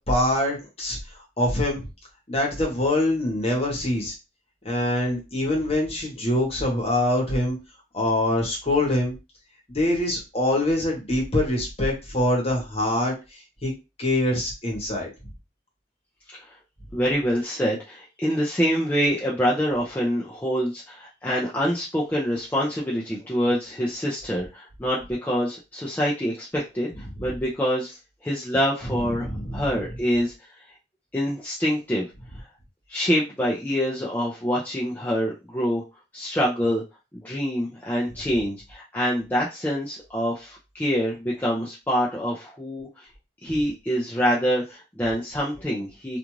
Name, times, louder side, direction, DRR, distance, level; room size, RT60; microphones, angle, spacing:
voice 1, 0.1-1.0 1.4-1.8 2.3-4.1 4.6-7.6 7.9-9.1 9.7-13.1 13.6-13.7 14.0-15.1 27.2-27.3 28.9-29.6, left 1 dB, 35° left, -1 dB, 1.0 m, -24 dB
voice 2, 16.9-27.9 28.2-29.3 29.5-30.3 31.1-32.1 32.9-35.8 36.1-36.8 37.1-43.1 43.4-46.2, equal, 10° left, -5 dB, 0.5 m, -26 dB
2.5 x 2.4 x 3.0 m, 0.27 s
head